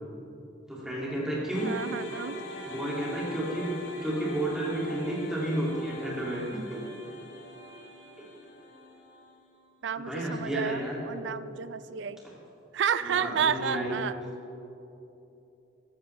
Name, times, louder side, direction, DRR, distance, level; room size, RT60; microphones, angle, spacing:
voice 1, 0.7-1.7 2.7-3.7 4.0-6.6 9.9-11.0 13.0-14.0, right 1 dB, 5° right, -6 dB, 2.4 m, -31 dB
sound 1, 1.5-9.8, left 1 dB, 70° left, 1.8 m, -43 dB
voice 2, 1.6-2.4 9.8-12.2 12.7-14.1, right 7 dB, 65° right, 15 dB, 0.4 m, -31 dB
14.5 x 11.5 x 3.3 m, 2.9 s
head